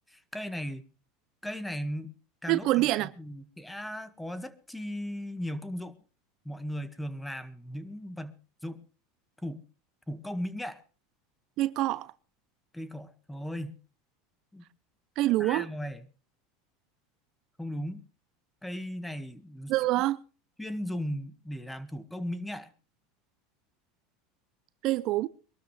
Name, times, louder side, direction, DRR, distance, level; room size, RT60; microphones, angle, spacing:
voice 1, 0.1-0.8 1.4-2.1 2.4-5.9 6.4-8.3 8.6-8.8 9.4-9.6 10.1-10.8 12.7-13.7 14.5-14.6 15.4-16.1 17.6-18.0 18.6-20.0 20.6-22.7, equal, 5° left, 1.7 m, -37 dB
voice 2, 2.5-3.1 11.6-12.1 15.2-15.6 19.7-20.2 24.8-25.3, right 17 dB, 55° right, 0.6 m, -26 dB
23.0 x 12.5 x 3.3 m
supercardioid pair, 110°, 0 cm